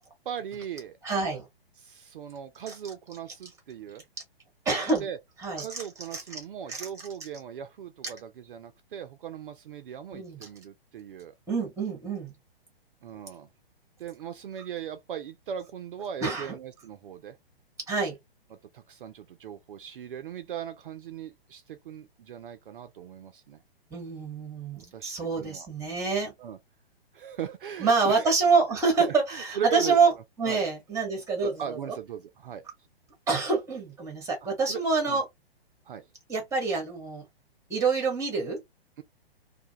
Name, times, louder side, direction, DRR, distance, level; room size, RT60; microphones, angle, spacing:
voice 1, 0.3-1.0 1.8-4.0 5.0-5.2 5.6-11.3 13.0-13.5 14.0-17.4 18.7-23.6 24.8-25.7 26.4-26.6 27.1-28.3 28.7-30.0 30.4-30.6 31.4-32.6 34.7-35.2 35.9-36.1 39.0-39.1, right 9 dB, 60° right, 0.4 m, -38 dB
voice 2, 1.0-1.5 4.6-5.1 5.4-5.8 6.1-6.4 6.7-6.9 10.1-10.5 11.5-12.3 16.2-16.5 17.9-18.2 23.9-26.3 27.8-30.1 30.4-31.9 33.3-35.2 36.3-37.2 37.7-38.6, right 4 dB, 10° right, 1.0 m, -26 dB
2.2 x 2.1 x 2.7 m
figure-of-eight pair, 125°, 30 cm